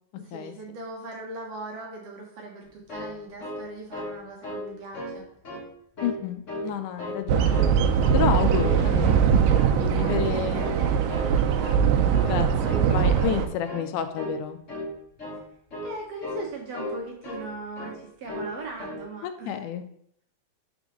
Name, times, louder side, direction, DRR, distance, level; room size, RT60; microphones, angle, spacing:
voice 1, 0.2-5.3 9.5-11.0 15.8-19.6, right 2 dB, 70° right, 0 dB, 1.7 m, -40 dB
sound 1, 2.6-4.2 4.4-4.7 4.9-5.6 5.9-6.7 7.0-7.7 8.0-8.2 8.5-9.3 9.5-9.8 10.0-10.3 10.6-11.3 11.6-11.8 12.1-12.3 12.6-12.9 13.1-13.4 13.6-13.9 14.2-14.4 14.7-14.9 15.2-15.4 15.7-15.9 16.2-16.5 16.7-17.5 17.7-18.0 18.2-18.5 18.8-19.0, left 1 dB, 40° left, 1.0 m, -35 dB
voice 2, 6.0-7.6 8.1-9.3 9.8-10.7 11.4-11.5 11.9-14.6 19.2-19.8, left 9 dB, 80° left, 9 dB, 2.0 m, -30 dB
sound 2, 7.3-13.5, right 7 dB, 85° right, 2.2 m, -21 dB
4.9 x 4.4 x 5.0 m, 0.68 s
omnidirectional pair, 3.6 m